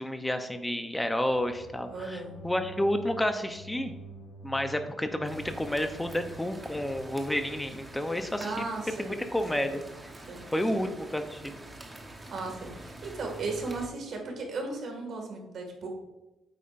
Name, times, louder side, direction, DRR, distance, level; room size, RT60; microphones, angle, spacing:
voice 1, 0.0-3.9 4.4-8.7 9.0-9.8 10.5-11.5, left 1 dB, 5° left, 7 dB, 0.7 m, -30 dB
sound 1, 1.3-8.6, right 2 dB, 40° left, 1.9 m, -48 dB
voice 2, 1.9-2.3 8.4-9.2 9.5-9.7 10.3-10.7 12.3-15.9, right 3 dB, 55° right, 2 dB, 2.1 m, -36 dB
sound 2, 5.2-13.9, right 1 dB, 15° right, 1.2 m, -46 dB
9.1 x 8.1 x 2.6 m, 1.0 s
cardioid pair, 130°, 0 cm